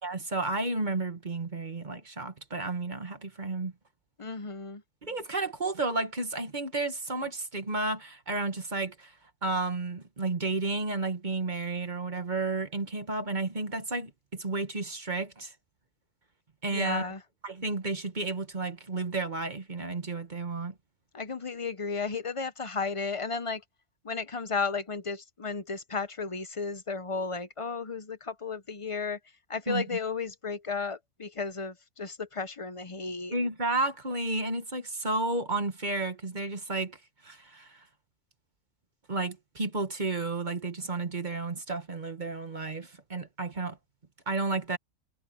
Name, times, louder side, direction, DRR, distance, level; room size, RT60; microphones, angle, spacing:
voice 1, 0.0-3.7 5.0-9.1 9.4-15.5 16.6-17.1 17.4-20.7 29.7-29.8 33.3-37.0 37.2-37.8 39.1-43.8 44.3-44.8, right 3 dB, 30° right, 1.5 m, -32 dB
voice 2, 4.2-4.8 16.7-17.2 21.1-23.6 24.0-29.2 29.5-33.3, left 4 dB, 35° left, 0.5 m, -34 dB
omnidirectional pair, 1.5 m